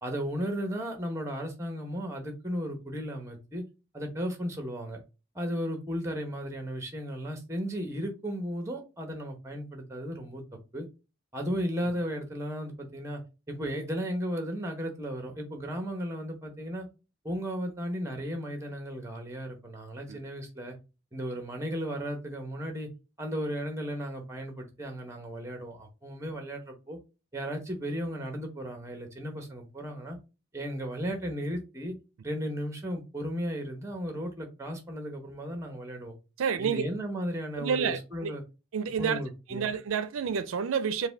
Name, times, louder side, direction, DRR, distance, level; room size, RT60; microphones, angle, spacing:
voice 1, 0.0-3.6 3.9-5.0 5.3-10.4 10.7-10.9 11.3-13.2 13.5-16.9 17.2-20.8 21.1-22.9 23.2-27.0 27.3-30.2 30.5-31.9 32.2-36.2 36.6-38.4 39.0-39.7, equal, 15° right, 0.8 m, -35 dB
voice 2, 36.4-36.9 37.6-38.3 38.7-39.2 39.5-41.1, right 6 dB, 85° right, 0.4 m, -29 dB
4.9 x 2.2 x 3.3 m
head